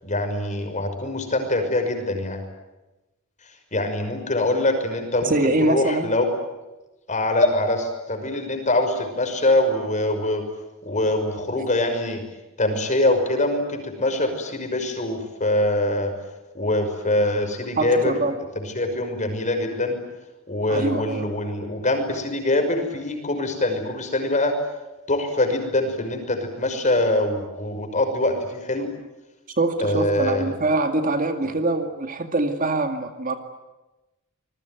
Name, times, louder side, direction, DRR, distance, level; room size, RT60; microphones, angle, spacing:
voice 1, 0.0-2.4 3.7-6.3 7.1-10.4 10.8-12.2 12.6-16.1 16.5-18.1 18.6-20.0 20.5-24.5 25.1-28.9 29.8-30.5, left 1 dB, 35° left, 6 dB, 5.8 m, -23 dB
voice 2, 5.2-6.1 17.8-18.3 20.7-21.2 29.6-33.4, right 2 dB, 40° right, 6 dB, 2.2 m, -23 dB
27.0 x 21.5 x 9.4 m, 1.0 s
head